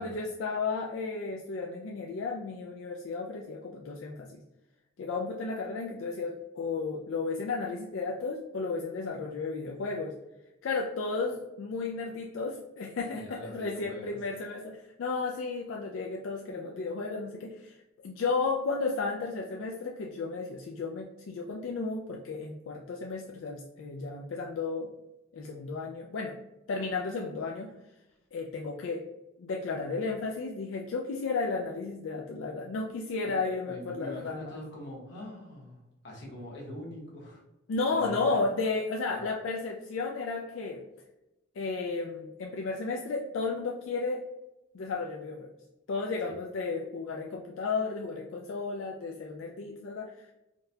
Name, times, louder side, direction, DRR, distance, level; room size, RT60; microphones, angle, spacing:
voice 1, 0.0-4.4 5.0-10.1 10.6-17.8 18.0-24.9 25.3-26.3 26.7-27.7 28.3-29.0 29.4-34.6 37.7-40.8 41.6-44.2 44.7-45.5 45.9-50.3, left 4 dB, 85° left, 0 dB, 0.4 m, -33 dB
voice 2, 13.1-14.2 33.2-33.4 33.7-37.4 37.9-38.5 39.1-39.2 46.2-46.3, left 1 dB, 60° left, -2 dB, 1.1 m, -43 dB
3.8 x 2.3 x 2.6 m, 0.97 s
head